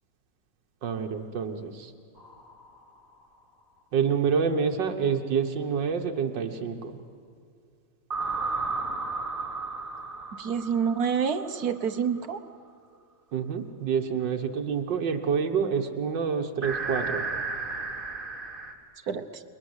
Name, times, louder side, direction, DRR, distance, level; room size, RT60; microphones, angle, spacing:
voice 1, 0.8-1.9 3.9-7.0 13.3-17.3, right 6 dB, 90° right, 4 dB, 1.9 m, -27 dB
sound 1, 2.2-3.0 8.1-11.8 16.6-18.7, right 3 dB, 30° right, 2.5 m, -33 dB
voice 2, 10.4-12.4 19.1-19.2, right 7 dB, 60° right, 9 dB, 1.5 m, -27 dB
30.0 x 22.0 x 8.1 m, 2.3 s
omnidirectional pair, 1.9 m